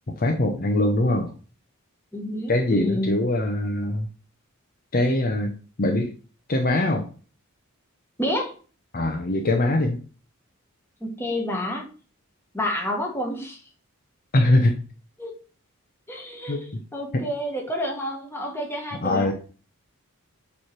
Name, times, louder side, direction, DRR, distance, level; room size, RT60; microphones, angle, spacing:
voice 1, 0.2-1.3 2.5-4.1 4.9-5.5 5.8-6.1 6.5-7.1 8.9-10.0 14.3-14.8 16.5-16.6 17.1-17.2 19.0-19.3, left 1 dB, 40° left, 3 dB, 0.7 m, -22 dB
voice 2, 2.1-3.2 8.2-8.5 11.0-11.8 12.5-13.6 15.2-15.3 16.1-19.3, left 1 dB, 10° left, 1 dB, 1.5 m, -29 dB
7.0 x 3.3 x 5.9 m, 0.39 s
head